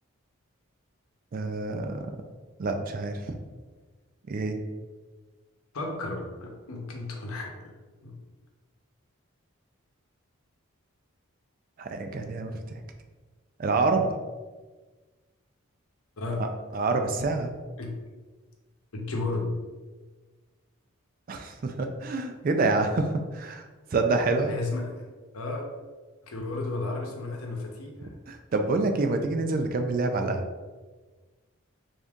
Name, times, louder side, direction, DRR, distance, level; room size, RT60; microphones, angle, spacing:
voice 1, 1.3-2.1 2.6-3.4 4.3-4.6 11.8-12.8 13.6-14.2 16.4-17.5 21.3-24.5 28.3-30.5, right 3 dB, 40° right, 6 dB, 0.3 m, -27 dB
voice 2, 5.7-7.8 8.0-8.1 16.2-16.5 17.8-17.9 18.9-19.6 24.4-25.1 25.3-25.7 26.2-28.1, left 2 dB, 80° left, 1 dB, 0.8 m, -33 dB
3.5 x 2.6 x 3.5 m, 1.3 s
head